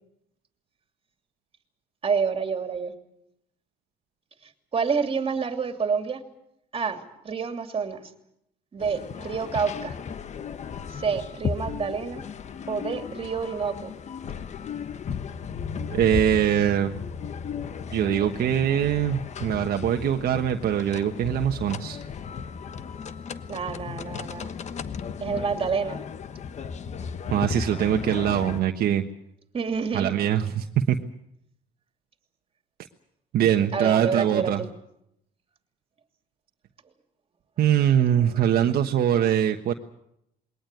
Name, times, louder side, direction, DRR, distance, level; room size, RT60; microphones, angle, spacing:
voice 1, 2.0-2.9 4.7-6.2 6.7-8.1 8.7-10.0 10.9-12.2 12.7-13.9 23.5-24.5 25.2-26.0 29.5-30.1 33.7-34.7 38.0-38.7, right 5 dB, 35° right, 6 dB, 2.9 m, -28 dB
sound 1, 8.8-28.6, left 6 dB, 45° left, 1.2 m, -35 dB
voice 2, 15.9-17.0 17.9-22.0 27.3-29.0 29.9-31.0 33.3-34.6 37.6-39.7, right 10 dB, 65° right, 4 dB, 1.3 m, -23 dB
21.5 x 19.0 x 9.3 m, 0.78 s
cardioid pair, 110°, 17 cm